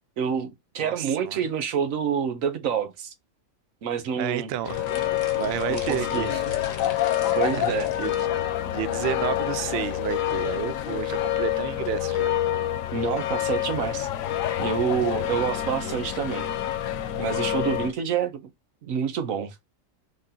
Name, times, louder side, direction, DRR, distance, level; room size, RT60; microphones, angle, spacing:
voice 1, 0.2-3.1 3.8-4.5 5.7-6.4 7.3-7.9 12.9-14.1 14.6-16.5 17.2-18.5 18.8-19.5, right 7 dB, 90° right, 1.2 m, -27 dB
voice 2, 0.8-1.4 4.2-4.8 5.4-6.4 6.8-6.9 7.3-8.1 8.4-12.3, right 11 dB, 65° right, 0.6 m, -31 dB
sound 1, 4.6-17.9, left 12 dB, 80° left, 1.0 m, -27 dB
sound 2, 4.6-8.3, left 3 dB, 35° left, 0.9 m, -44 dB
3.6 x 2.7 x 3.7 m
omnidirectional pair, 1.4 m